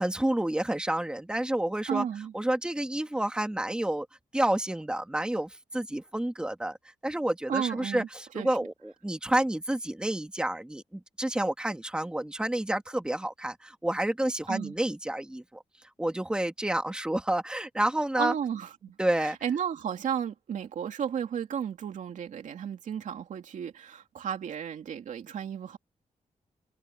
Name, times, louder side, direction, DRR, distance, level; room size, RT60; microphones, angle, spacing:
voice 1, 0.0-2.0 2.3-4.1 4.3-6.8 7.0-15.6 16.0-18.3 19.0-19.4, right 1 dB, 5° right, 2.1 m, -29 dB
voice 2, 1.9-2.3 7.5-8.1 8.3-8.6 14.5-14.7 18.2-25.8, right 8 dB, 90° right, 2.8 m, -33 dB
wide cardioid pair, 165°, 13 cm